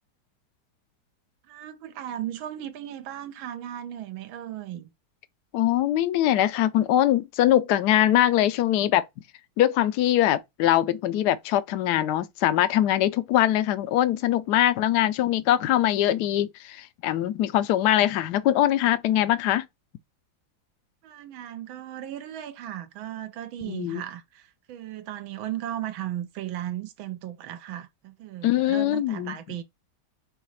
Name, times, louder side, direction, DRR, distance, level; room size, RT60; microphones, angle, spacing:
voice 1, 1.4-4.9 21.0-29.6, right 12 dB, 80° right, 1.4 m, -36 dB
voice 2, 5.5-9.1 9.6-19.7 23.7-24.0 28.4-29.4, left 12 dB, 70° left, 1.0 m, -22 dB
5.7 x 2.3 x 3.1 m
omnidirectional pair, 2.2 m